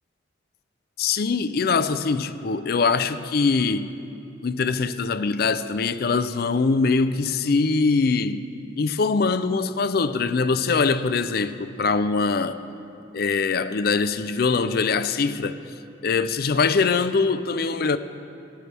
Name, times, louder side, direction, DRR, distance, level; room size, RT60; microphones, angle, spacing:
voice 1, 1.0-3.9 4.4-8.4 8.8-12.6 13.1-15.6 16.0-18.0, left 4 dB, 50° left, 0.4 m, -23 dB
18.5 x 9.9 x 3.4 m
head